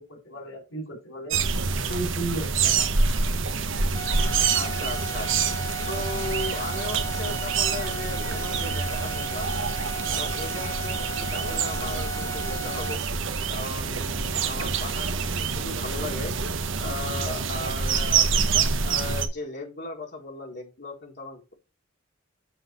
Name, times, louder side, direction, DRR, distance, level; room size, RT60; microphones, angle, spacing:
voice 1, 0.0-1.4 1.9-2.9, right 2 dB, 75° left, 0 dB, 3.5 m, -34 dB
sound 1, 1.3-19.3, right 5 dB, 70° right, 1.0 m, -26 dB
sound 2, 3.9-13.0, right 1 dB, 15° left, 0.6 m, -36 dB
voice 2, 4.5-5.3 5.9-9.5 10.1-13.0 13.5-16.3 16.8-18.4 18.8-21.5, left 2 dB, 55° left, -1 dB, 1.8 m, -36 dB
7.9 x 3.9 x 6.6 m, 0.30 s
head